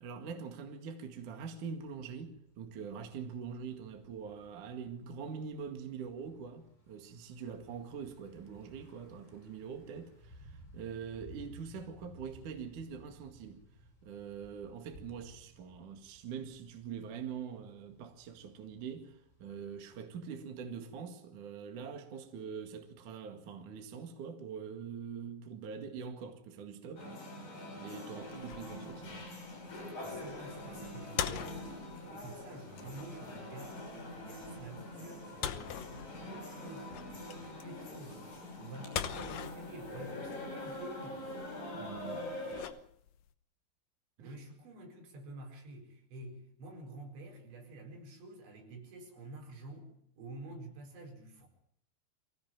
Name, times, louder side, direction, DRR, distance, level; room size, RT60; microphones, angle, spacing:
voice 1, 0.0-13.6 14.0-27.1 27.7-29.3 41.7-42.7 44.2-44.3, right 6 dB, 50° right, 2.9 m, -44 dB
Thunder / Bicycle, 1.6-20.0, equal, 25° left, 6.6 m, -59 dB
sound 1, 27.0-42.6, left 1 dB, 50° left, 7.6 m, -44 dB
sound 2, 28.2-43.3, left 10 dB, 85° left, 1.9 m, -44 dB
voice 2, 29.9-33.8 34.2-36.0 36.2-38.3 38.6-41.3 44.2-49.9 50.2-51.5, right 2 dB, 75° right, 7.0 m, -49 dB
24.0 x 17.0 x 9.2 m
omnidirectional pair, 5.4 m